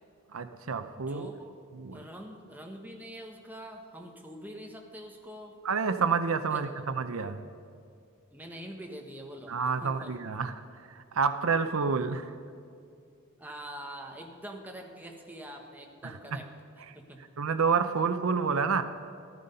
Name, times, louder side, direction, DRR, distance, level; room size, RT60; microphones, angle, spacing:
voice 1, 0.3-1.3 1.7-2.0 5.6-7.4 9.5-10.5 10.9-12.3 16.0-16.4 16.9-17.0 17.4-18.8, right 5 dB, 75° right, 10 dB, 0.6 m, -29 dB
voice 2, 1.0-1.5 1.9-5.6 6.5-6.6 8.3-10.1 13.4-16.4 16.9-17.2, equal, 10° right, 2 dB, 1.3 m, -44 dB
13.5 x 13.5 x 5.5 m, 2.5 s
head